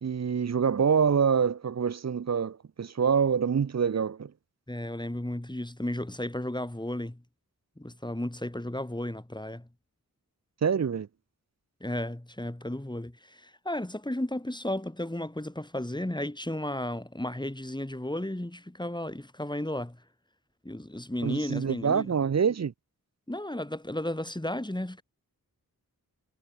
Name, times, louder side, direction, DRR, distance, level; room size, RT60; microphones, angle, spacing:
voice 1, 0.0-4.3 10.6-11.1 21.2-22.7, right 6 dB, 45° right, 0.5 m, -26 dB
voice 2, 4.7-7.2 7.8-9.7 11.8-20.0 20.6-22.1 23.3-25.0, left 1 dB, 10° left, 2.8 m, -34 dB
wide cardioid pair, 70°, 36 cm